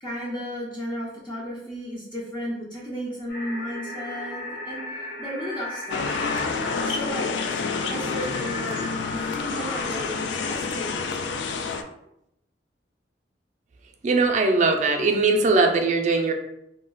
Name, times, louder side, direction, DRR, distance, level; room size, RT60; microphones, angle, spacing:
voice 1, 0.0-7.3 7.9-8.8 9.1-11.3, equal, 25° left, -5 dB, 0.5 m, -34 dB
sound 1, 3.3-9.8, left 1 dB, 70° left, 0.9 m, -37 dB
sound 2, 5.9-11.8, left 4 dB, 90° left, 0.3 m, -28 dB
voice 2, 14.0-16.3, right 3 dB, 45° right, 3 dB, 0.4 m, -20 dB
2.3 x 2.1 x 3.7 m, 0.80 s
head